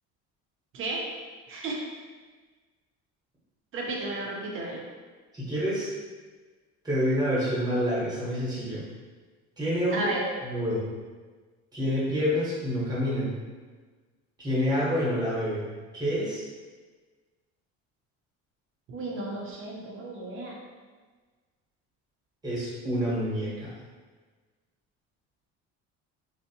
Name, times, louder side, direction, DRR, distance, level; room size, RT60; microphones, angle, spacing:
voice 1, 0.7-1.0 1.5-1.8 3.7-4.8 9.9-10.2 18.9-20.6, right 2 dB, 45° right, -1 dB, 0.6 m, -33 dB
voice 2, 5.3-5.9 6.8-8.8 9.6-10.1 10.4-10.8 11.7-13.3 14.4-15.6 15.9-16.4 22.4-23.7, equal, 15° right, -8 dB, 0.9 m, -27 dB
2.6 x 2.0 x 2.7 m, 1.4 s
cardioid pair, 130°, 30 cm